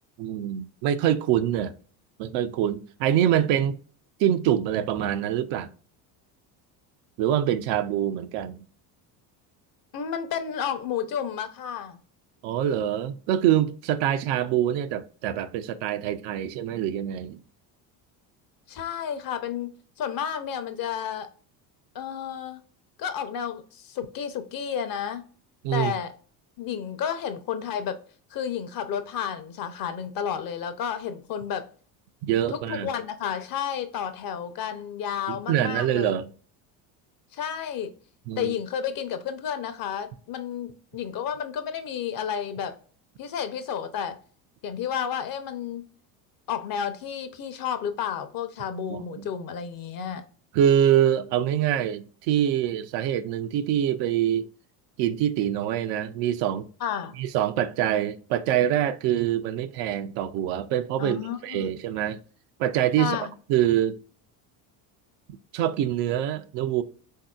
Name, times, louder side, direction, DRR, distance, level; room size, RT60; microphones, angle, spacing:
voice 1, 0.2-1.7 2.2-3.8 4.2-5.7 7.2-8.6 12.4-17.4 25.6-25.9 32.2-32.9 35.3-36.3 38.3-38.5 48.9-49.3 50.5-54.5 55.0-56.7 57.2-62.2 62.6-63.2 63.5-64.0 65.5-66.8, right 10 dB, 65° right, 0.5 m, -25 dB
voice 2, 9.9-12.0 18.7-19.7 20.0-21.3 21.9-22.6 23.0-25.3 25.7-26.1 26.6-28.0 28.3-31.7 32.5-36.2 37.3-37.9 38.4-42.7 43.2-44.2 44.6-45.8 46.5-50.2 56.8-57.2 61.0-61.7 63.0-63.3, left 8 dB, 45° left, 0.6 m, -31 dB
3.6 x 2.7 x 2.2 m
supercardioid pair, 85°, 48 cm